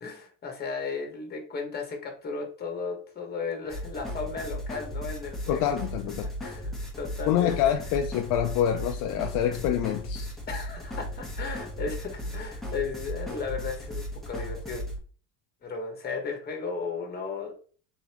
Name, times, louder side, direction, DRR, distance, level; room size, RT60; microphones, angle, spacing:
voice 1, 0.0-5.7 6.4-7.5 10.5-14.8 15.6-17.6, left 4 dB, 30° left, 1.2 m, -35 dB
sound 1, 3.7-15.0, equal, ahead, 0.9 m, -36 dB
voice 2, 5.5-6.3 7.3-10.3, left 10 dB, 70° left, 0.5 m, -26 dB
3.9 x 3.9 x 2.9 m
cardioid pair, 145°, 35 cm